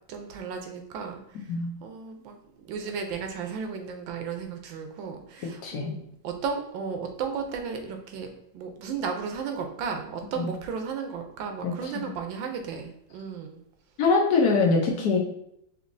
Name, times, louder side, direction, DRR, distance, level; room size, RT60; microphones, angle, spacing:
voice 1, 0.1-1.2 1.8-2.4 2.6-8.3 8.5-13.6 14.9-15.1, right 6 dB, 85° right, 5 dB, 1.4 m, -34 dB
voice 2, 5.6-5.9 10.4-10.5 11.6-12.1 14.0-15.2, left 4 dB, 65° left, 0 dB, 1.1 m, -23 dB
5.0 x 3.0 x 2.6 m, 0.74 s
omnidirectional pair, 2.0 m